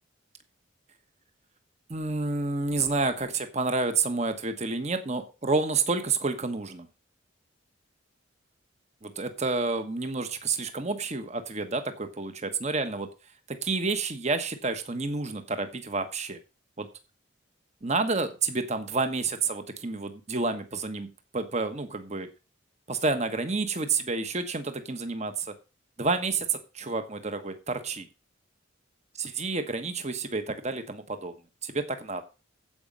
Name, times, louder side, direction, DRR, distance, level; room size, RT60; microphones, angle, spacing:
voice 1, 1.9-6.9 9.0-13.1 13.5-16.4 16.8-16.9 17.8-21.1 21.3-22.3 22.9-25.5 26.0-28.1 29.2-31.3 31.6-32.2, right 3 dB, 35° right, 9 dB, 1.2 m, -29 dB
15.0 x 5.2 x 5.5 m, 0.32 s
head